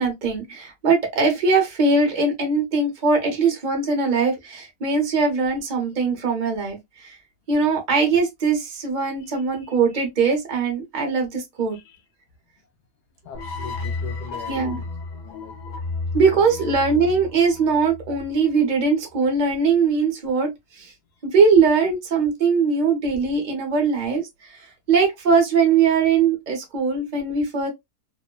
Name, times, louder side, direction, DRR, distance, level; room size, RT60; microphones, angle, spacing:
voice 1, 0.0-7.2 7.5-11.8 14.5-14.8 16.1-20.5 20.8-20.9 21.2-24.2 24.9-27.7, right 4 dB, 40° right, 0.7 m, -21 dB
voice 2, 13.2-14.9 15.2-15.8, left 5 dB, 80° left, 1.1 m, -41 dB
sound 1, 13.3-18.6, left 3 dB, 60° left, 1.1 m, -32 dB
2.9 x 2.1 x 2.2 m
omnidirectional pair, 1.7 m